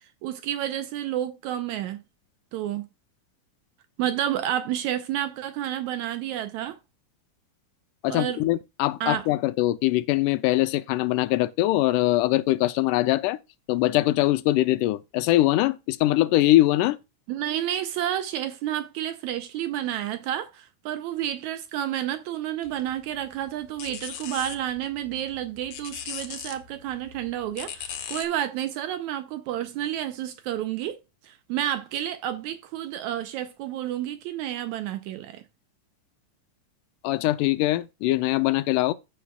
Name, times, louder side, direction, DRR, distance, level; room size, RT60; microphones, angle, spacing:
voice 1, 0.2-2.0 2.5-2.9 4.0-6.8 8.1-8.4 9.0-9.3 17.3-35.4, right 11 dB, 80° right, 1.8 m, -30 dB
voice 2, 8.0-13.4 13.7-17.0 37.0-38.9, left 16 dB, 85° left, 2.1 m, -22 dB
sound 1, 22.6-28.3, left 9 dB, 65° left, 2.0 m, -40 dB
15.0 x 5.5 x 2.3 m
omnidirectional pair, 3.7 m